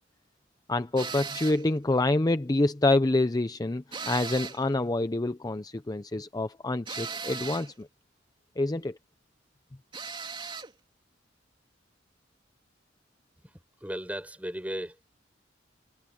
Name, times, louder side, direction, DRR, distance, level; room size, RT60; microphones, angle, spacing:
voice 1, 0.7-7.9 8.6-9.0, left 2 dB, 20° left, 0.5 m, -27 dB
sound 1, 1.0-1.7 3.9-4.7 6.9-7.7 9.9-10.7, right 5 dB, 25° right, 3.4 m, -37 dB
voice 2, 13.4-15.1, right 1 dB, 10° right, 4.6 m, -36 dB
head